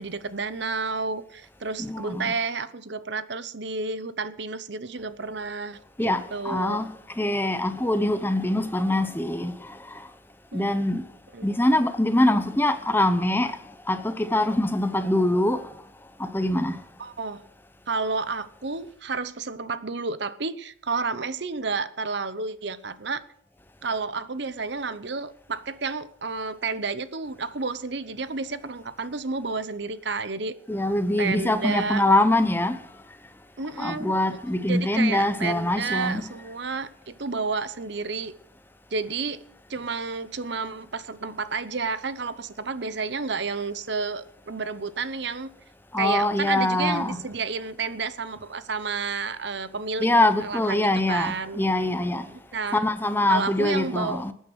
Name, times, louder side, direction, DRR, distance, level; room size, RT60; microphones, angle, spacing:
voice 1, 0.0-6.9 10.5-10.7 11.3-11.5 17.0-17.4 17.9-23.2 23.8-30.5 31.2-32.0 33.6-34.1 34.7-38.3 38.9-39.4 39.7-45.5 46.0-50.1 50.4-51.6 52.5-52.8 53.3-54.2, right 4 dB, 55° right, 0.9 m, -31 dB
voice 2, 1.8-2.3 6.0-6.9 7.2-10.1 10.5-11.0 11.4-13.6 13.9-15.7 16.2-16.8 30.7-32.8 33.8-36.2 45.9-47.2 50.0-52.3 52.7-54.3, left 1 dB, 10° left, 0.7 m, -24 dB
20.0 x 9.1 x 6.3 m
head